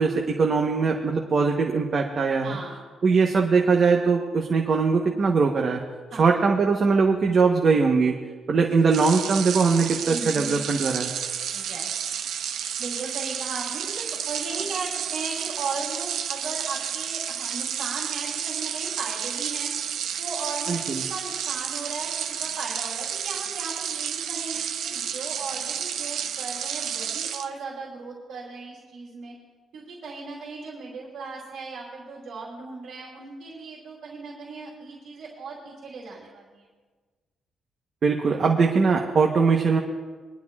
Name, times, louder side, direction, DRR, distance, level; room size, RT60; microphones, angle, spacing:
voice 1, 0.0-2.6 3.0-5.8 6.2-8.1 8.5-11.1 20.7-21.0 38.0-39.8, right 4 dB, 35° right, 1 dB, 0.9 m, -21 dB
voice 2, 2.4-2.9 6.1-6.4 10.1-10.8 11.5-11.9 12.8-19.7 20.2-22.1 22.4-29.3 29.7-36.6, right 4 dB, 60° right, -4 dB, 2.9 m, -37 dB
sound 1, 8.9-27.5, right 8 dB, 85° right, 0.7 m, -31 dB
23.0 x 11.5 x 2.4 m, 1.4 s
cardioid pair, 165°, 0 cm